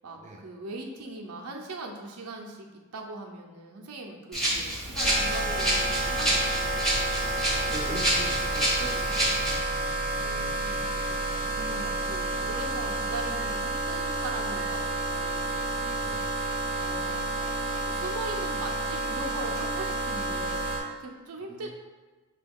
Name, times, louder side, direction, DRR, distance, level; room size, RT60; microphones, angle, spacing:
voice 1, 0.0-2.7 2.9-6.9 10.1-15.6 16.7-21.7, right 2 dB, 80° right, 1 dB, 0.6 m, -40 dB
Rattle (instrument), 4.3-9.6, right 1 dB, ahead, 0.9 m, -28 dB
sound 1, 5.0-20.8, right 2 dB, 40° left, 0.7 m, -30 dB
voice 2, 7.7-9.4 16.0-16.3 21.4-21.7, right 1 dB, 35° right, -1 dB, 0.5 m, -41 dB
6.0 x 2.3 x 3.5 m, 1.3 s
head